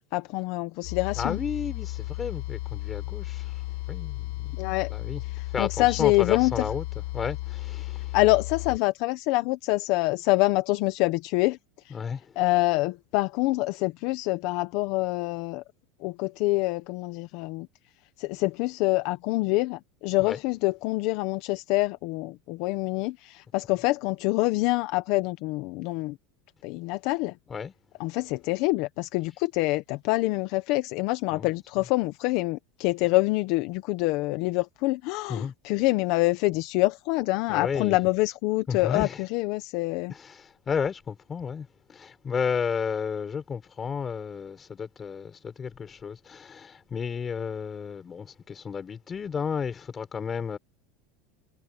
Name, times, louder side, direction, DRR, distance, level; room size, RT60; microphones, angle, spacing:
voice 1, 0.1-1.4 4.6-4.9 5.6-6.6 8.1-11.6 12.4-15.6 16.0-17.7 18.2-26.2 26.6-27.3 28.0-40.1, left 21 dB, 55° left, 1.1 m, -26 dB
sound 1, 0.8-8.8, left 19 dB, 70° left, 2.3 m, -34 dB
voice 2, 1.1-5.2 5.5-8.2 11.9-12.4 20.2-20.4 27.5-27.7 31.3-31.5 35.3-35.5 37.5-38.0 38.7-39.3 40.1-50.6, left 6 dB, 20° left, 5.0 m, -33 dB
supercardioid pair, 145°, 0 cm